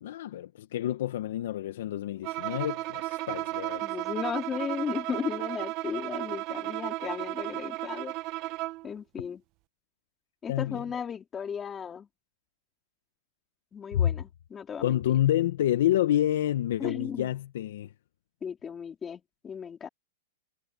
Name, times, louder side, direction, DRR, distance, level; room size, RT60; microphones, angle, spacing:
voice 1, 0.0-3.8 10.5-10.8 13.9-14.0 14.8-17.9, left 12 dB, 70° left, 1.0 m, -28 dB
Bowed string instrument, 2.2-8.9, right 19 dB, 35° right, 1.0 m, -34 dB
voice 2, 3.8-8.2 8.8-9.4 10.4-12.1 13.7-15.0 16.8-17.3 18.4-19.9, left 7 dB, 15° left, 4.0 m, -35 dB
supercardioid pair, 160°, 0 cm